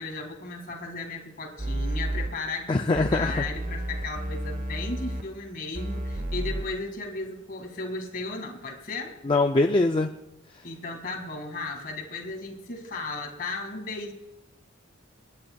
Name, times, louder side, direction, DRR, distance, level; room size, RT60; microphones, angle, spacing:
voice 1, 0.0-9.1 10.6-14.1, left 3 dB, 45° left, 2 dB, 2.1 m, -35 dB
sound 1, 1.6-2.3 2.9-5.2 5.7-6.6, right 1 dB, 45° right, 1.1 m, -31 dB
voice 2, 2.7-3.3 9.3-10.1, left 2 dB, 25° left, 4 dB, 0.4 m, -22 dB
26.5 x 9.9 x 2.3 m, 0.96 s
head